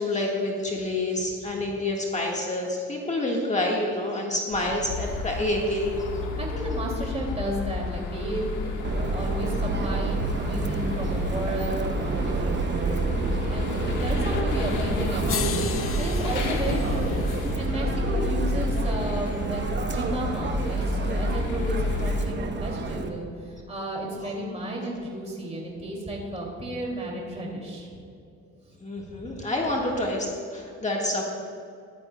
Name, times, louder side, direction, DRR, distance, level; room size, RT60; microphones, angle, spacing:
voice 1, 0.0-6.1 24.2-24.3 28.8-31.2, left 1 dB, 25° left, -1 dB, 1.5 m, -28 dB
sound 1, 4.5-22.2, left 2 dB, 85° left, 1.4 m, -31 dB
voice 2, 6.4-19.6 19.9-27.9 28.7-28.8 29.0-29.1, right 1 dB, 20° right, -2 dB, 2.4 m, -33 dB
Subway metro underground, 8.8-23.1, right 4 dB, 35° right, 0.9 m, -29 dB
sound 2, 14.7-14.8 15.3-19.5 20.8-20.9, left 9 dB, 45° left, 0.6 m, -38 dB
14.5 x 11.5 x 2.2 m, 2.5 s
cardioid pair, 90°, 30 cm